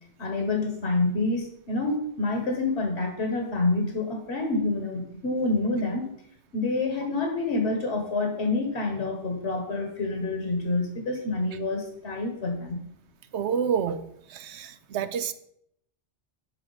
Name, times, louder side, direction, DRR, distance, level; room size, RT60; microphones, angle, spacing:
voice 1, 0.2-6.1 6.5-12.8, left 2 dB, 70° left, 2 dB, 1.6 m, -27 dB
voice 2, 13.3-14.0 14.3-15.3, right 7 dB, 75° right, 12 dB, 0.9 m, -28 dB
12.5 x 4.5 x 4.0 m, 0.72 s
omnidirectional pair, 1.2 m